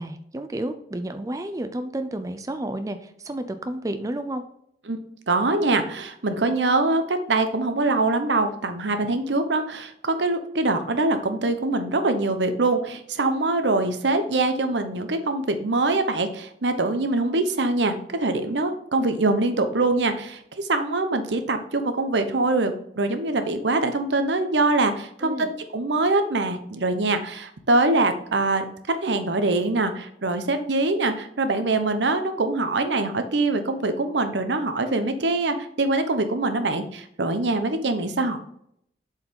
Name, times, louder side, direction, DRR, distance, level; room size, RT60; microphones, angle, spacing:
voice 1, 0.0-4.4 25.2-25.5, right 1 dB, 20° right, 8 dB, 0.5 m, -31 dB
voice 2, 5.3-38.4, right 2 dB, 85° right, 8 dB, 0.9 m, -24 dB
7.8 x 4.7 x 3.7 m, 0.72 s
head